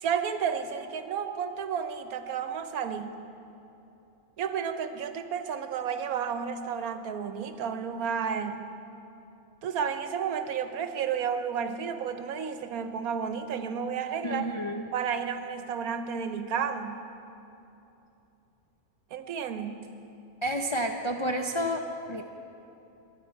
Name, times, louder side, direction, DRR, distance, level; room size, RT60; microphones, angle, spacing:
voice 1, 0.0-3.2 4.4-8.6 9.6-14.5 14.9-17.0 19.1-19.9, right 7 dB, 75° right, 9 dB, 1.2 m, -32 dB
voice 2, 14.2-14.9 20.4-22.2, equal, 45° left, 2 dB, 0.3 m, -30 dB
22.0 x 9.9 x 4.6 m, 2.8 s
omnidirectional pair, 1.6 m